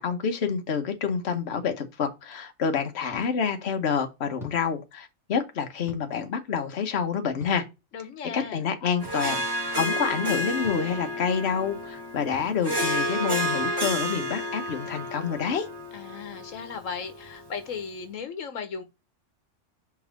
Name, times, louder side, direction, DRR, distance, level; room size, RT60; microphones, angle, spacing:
voice 1, 0.0-7.6 8.3-9.4 9.7-15.7, left 6 dB, 55° left, 1.3 m, -28 dB
sound 1, 3.1-3.2 4.4-4.6 5.9-6.0 7.4-7.6 9.0-9.2 10.6-10.8 12.3-12.5 13.6-13.7 14.7-14.8, left 2 dB, ahead, 2.8 m, -44 dB
voice 2, 7.9-8.6 15.9-18.8, left 6 dB, 80° left, 1.4 m, -36 dB
Harp, 9.0-17.7, equal, 20° right, 1.4 m, -31 dB
5.4 x 3.6 x 5.1 m
omnidirectional pair, 1.3 m